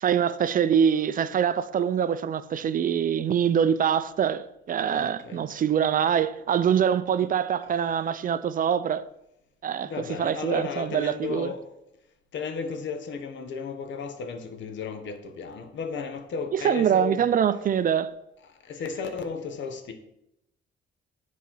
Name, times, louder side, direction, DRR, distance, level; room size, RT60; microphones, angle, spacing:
voice 1, 0.0-9.0 9.6-9.9 10.2-11.5 16.5-18.1, right 8 dB, 45° right, 0.4 m, -24 dB
voice 2, 4.9-5.4 9.8-11.6 12.3-17.4 18.4-19.9, left 5 dB, 70° left, 1.1 m, -34 dB
7.4 x 4.1 x 5.5 m
cardioid pair, 90°, 20 cm